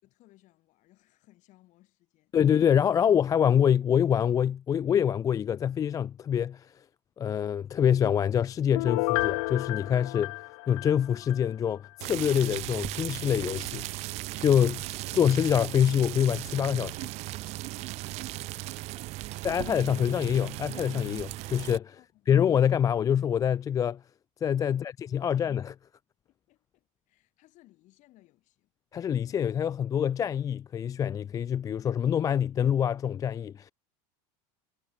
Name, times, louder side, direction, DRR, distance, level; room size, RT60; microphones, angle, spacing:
voice 1, 0.0-2.3 17.7-19.3 21.9-22.3 24.7-24.8 25.1-25.4 26.2-28.7, left 18 dB, 45° left, 6.8 m, -62 dB
voice 2, 2.3-6.7 7.2-10.3 10.7-13.9 14.4-14.8 15.1-17.0 19.4-22.0 22.3-24.0 24.4-25.7 28.9-33.7, left 9 dB, 20° left, 0.4 m, -25 dB
Piano, 8.8-11.4 11.8-11.9, left 31 dB, 65° left, 0.6 m, -31 dB
sound 1, 12.0-21.8, right 19 dB, 40° right, 0.4 m, -37 dB
supercardioid pair, 140°, 17 cm